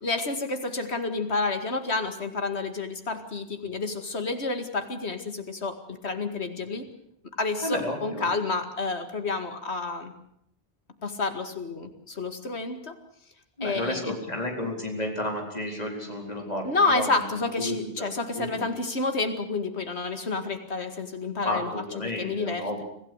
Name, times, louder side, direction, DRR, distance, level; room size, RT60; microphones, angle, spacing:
voice 1, 0.0-6.9 7.4-10.1 11.0-13.0 13.6-14.2 16.6-22.7, left 3 dB, 80° left, 7 dB, 2.4 m, -29 dB
voice 2, 7.6-8.3 13.6-17.1 17.6-17.9 18.3-18.7 21.4-22.8, left 1 dB, 40° left, 1 dB, 4.5 m, -31 dB
25.5 x 16.0 x 8.1 m, 0.71 s
omnidirectional pair, 1.1 m